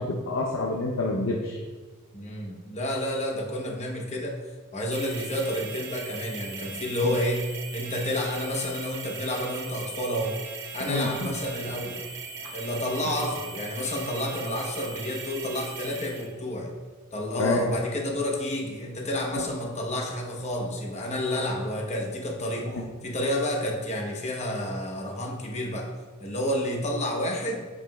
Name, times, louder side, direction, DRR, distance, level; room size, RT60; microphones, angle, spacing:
voice 1, 0.0-1.6 7.0-7.2 10.8-11.3 12.4-12.5 17.4-17.7 22.7-22.8, left 2 dB, 65° left, -1 dB, 0.6 m, -28 dB
voice 2, 2.1-4.4 4.7-7.4 7.7-10.3 10.7-12.0 12.5-16.7 17.1-22.7 23.0-25.9 26.2-27.7, left 1 dB, 30° left, 0 dB, 0.9 m, -30 dB
sound 1, 4.9-16.3, right 5 dB, 60° right, 0.8 m, -39 dB
8.1 x 5.5 x 2.3 m, 1.4 s
head